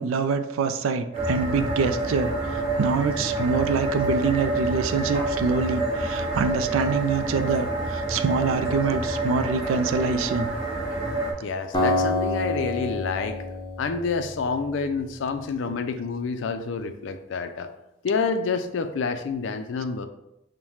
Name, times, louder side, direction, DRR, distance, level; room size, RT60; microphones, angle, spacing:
voice 1, 0.0-10.5 15.7-15.8, right 5 dB, 85° right, 10 dB, 0.3 m, -25 dB
sound 1, 1.1-11.3, right 2 dB, 30° right, 1.3 m, -28 dB
voice 2, 11.4-13.5 13.8-17.7 18.0-20.1, left 4 dB, 65° left, 8 dB, 0.4 m, -28 dB
Acoustic guitar, 11.7-14.9, left 2 dB, 20° left, 0.6 m, -27 dB
5.4 x 2.1 x 3.1 m, 0.86 s
head